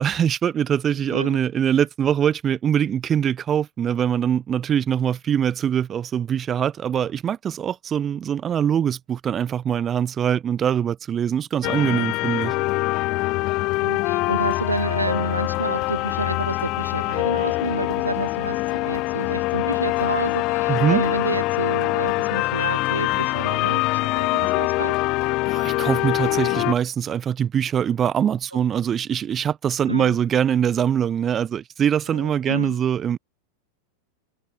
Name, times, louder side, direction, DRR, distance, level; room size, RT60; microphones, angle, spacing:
voice 1, 0.0-12.5 20.7-21.0 25.5-33.2, right 9 dB, 25° right, 1.2 m, -23 dB
voice 2, 1.0-1.4 13.8-25.0 28.5-28.7 29.9-30.2 32.1-32.8, right 2 dB, 85° right, 3.5 m, -29 dB
Romantic Song, 11.6-26.7, left 21 dB, 40° left, 3.7 m, -24 dB
figure-of-eight pair, 90°, 0 cm